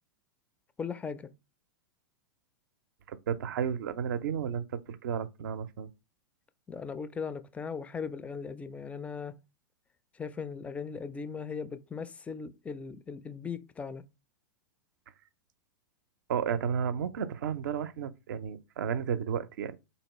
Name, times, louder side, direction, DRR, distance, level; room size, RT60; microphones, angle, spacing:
voice 1, 0.8-1.3 6.7-9.3 10.1-14.0, left 5 dB, 10° left, 0.3 m, -38 dB
voice 2, 3.1-5.9 16.3-19.8, right 7 dB, 65° right, 0.5 m, -32 dB
3.8 x 2.8 x 3.0 m
hypercardioid pair, 100°, 11 cm